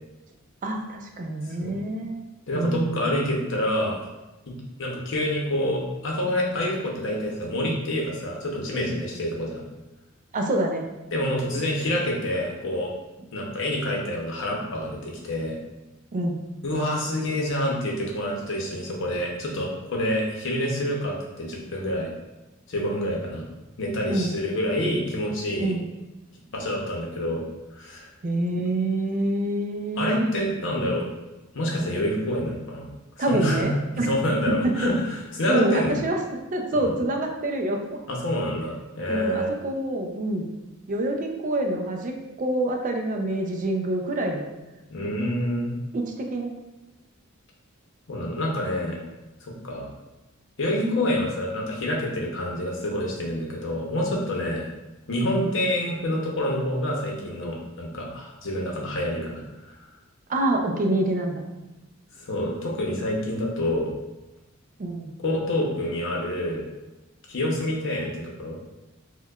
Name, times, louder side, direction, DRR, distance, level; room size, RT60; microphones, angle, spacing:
voice 1, 0.6-2.2 2.5-3.2 10.3-10.9 16.1-16.4 24.1-24.3 25.6-25.8 28.2-30.4 33.2-34.1 34.5-34.9 35.5-36.2 36.5-38.0 39.1-40.5 40.9-44.5 45.9-46.5 55.3-55.5 60.3-61.4 64.8-65.1, right 1 dB, 40° right, 2 dB, 0.4 m, -26 dB
voice 2, 1.4-1.8 2.5-4.0 4.5-9.6 11.1-12.9 13.3-15.6 16.6-22.1 22.7-23.5 23.8-25.7 26.5-27.4 27.8-28.1 30.0-31.1 31.5-32.9 33.2-33.7 34.0-35.9 36.7-36.9 38.1-39.5 44.9-45.7 48.1-49.0 49.4-49.9 50.6-54.7 55.1-59.4 59.8-59.9 62.2-63.9 65.2-66.6 67.3-68.6, left 1 dB, 65° left, -1 dB, 0.7 m, -27 dB
4.4 x 2.2 x 2.3 m, 1.1 s
head